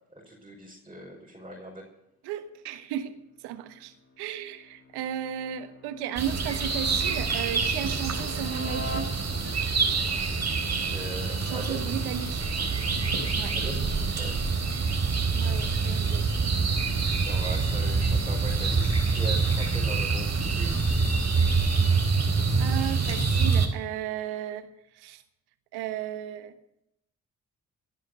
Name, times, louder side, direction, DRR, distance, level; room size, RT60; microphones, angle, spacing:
voice 1, 0.3-1.9 10.6-11.8 13.5-13.8 14.1-14.3 17.0-20.8, right 1 dB, 15° right, -3 dB, 5.4 m, -40 dB
voice 2, 2.2-3.2 3.4-9.1 11.4-12.5 13.3-13.6 15.3-16.3 22.6-25.2 25.7-26.6, right 10 dB, 85° right, 10 dB, 1.3 m, -35 dB
sound 1, 3.3-9.7, left 1 dB, 35° left, 3.7 m, -43 dB
sound 2, 6.2-23.7, right 4 dB, 45° right, 4.0 m, -26 dB
18.0 x 11.0 x 6.4 m, 0.81 s
hypercardioid pair, 45°, 38 cm